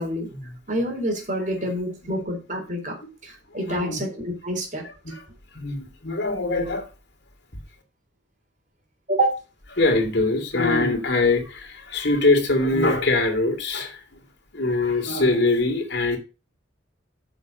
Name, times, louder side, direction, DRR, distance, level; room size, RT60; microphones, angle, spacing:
voice 1, 0.7-3.0 3.2-4.8 9.1-9.4, right 1 dB, 40° right, 3.9 m, -27 dB
voice 2, 3.6-4.0 5.0-5.2 5.5-6.9 9.7-14.0 14.5-16.2, left 2 dB, 60° left, 3.0 m, -23 dB
8.2 x 6.8 x 5.2 m
head